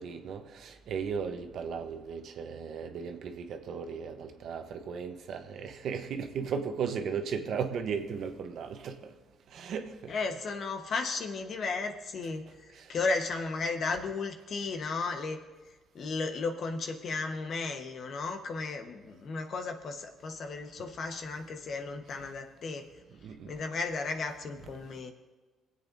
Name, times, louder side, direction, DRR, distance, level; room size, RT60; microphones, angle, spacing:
voice 1, 0.0-9.1 9.5-10.2 12.7-13.0 20.8-20.9 23.1-23.6, right 6 dB, 70° right, 6 dB, 1.0 m, -36 dB
voice 2, 10.1-15.4 15.9-22.9 23.5-25.1, left 4 dB, 60° left, 5 dB, 1.2 m, -34 dB
22.0 x 8.1 x 2.7 m, 1.3 s
supercardioid pair, 75°, 0 cm